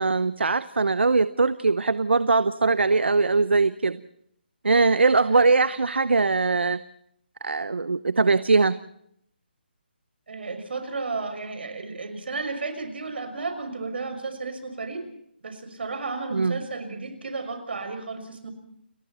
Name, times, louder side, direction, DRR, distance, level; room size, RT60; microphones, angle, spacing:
voice 1, 0.0-4.0 4.6-6.8 7.4-8.8 16.3-16.6, right 3 dB, 85° right, 15 dB, 0.9 m, -21 dB
voice 2, 10.3-15.1 15.4-18.5, right 3 dB, 70° right, 7 dB, 6.1 m, -33 dB
30.0 x 21.0 x 4.3 m, 0.71 s
figure-of-eight pair, 155°, 6 cm